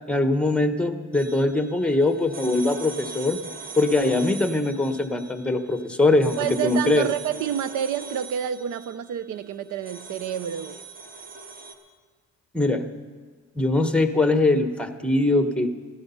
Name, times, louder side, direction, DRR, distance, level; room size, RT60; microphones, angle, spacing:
voice 1, 0.1-3.4 3.8-6.4 6.6-7.1 12.5-12.9 13.5-15.7, left 2 dB, 5° left, 1.0 m, -22 dB
sound 1, 1.1-11.7, right 4 dB, 30° right, 1.7 m, -41 dB
voice 2, 6.4-10.8, right 9 dB, 75° right, 0.7 m, -28 dB
15.0 x 12.0 x 5.6 m
cardioid pair, 90°, 30 cm